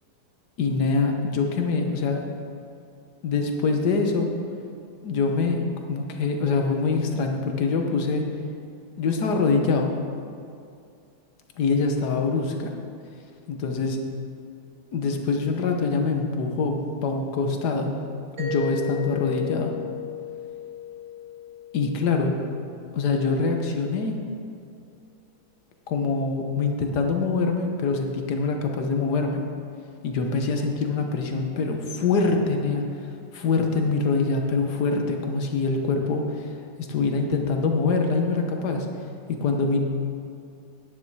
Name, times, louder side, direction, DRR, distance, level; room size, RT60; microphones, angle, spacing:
voice 1, 0.6-2.2 3.2-4.3 5.0-5.6 5.9-8.2 9.0-9.9 11.6-12.7 13.5-14.0 14.9-17.9 18.4-19.7 21.7-22.4 22.9-24.2 25.9-29.4 30.0-32.8 33.3-36.5 36.8-38.9 39.3-39.8, left 4 dB, 80° left, 3 dB, 1.7 m, -24 dB
Mallet percussion, 18.4-23.0, left 6 dB, 50° right, 2.1 m, -35 dB
10.5 x 9.8 x 4.8 m, 2.4 s
omnidirectional pair, 1.7 m